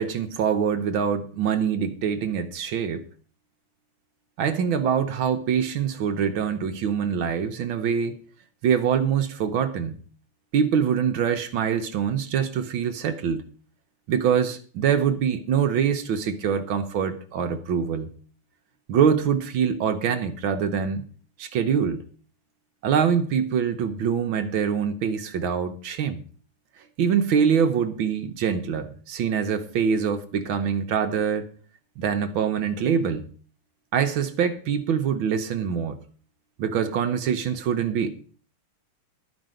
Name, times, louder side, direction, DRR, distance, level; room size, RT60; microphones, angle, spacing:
voice 1, 0.0-3.0 4.4-8.1 8.6-10.0 10.5-13.4 14.1-18.1 18.9-21.0 21.4-22.0 22.8-26.2 27.0-31.5 32.0-33.3 33.9-36.0 36.6-38.1, right 7 dB, 70° right, 1.6 m, -24 dB
12.0 x 5.3 x 7.6 m
omnidirectional pair, 2.4 m